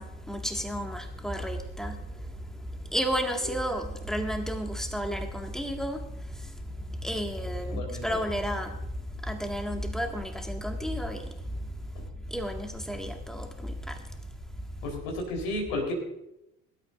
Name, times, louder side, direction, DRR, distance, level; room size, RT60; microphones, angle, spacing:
voice 1, 0.0-14.9, equal, ahead, 4 dB, 2.0 m, -33 dB
voice 2, 7.7-8.2 12.0-12.1 14.8-15.9, left 1 dB, 65° left, 1 dB, 4.3 m, -33 dB
23.0 x 12.5 x 2.6 m, 0.88 s
figure-of-eight pair, 60°, 43 cm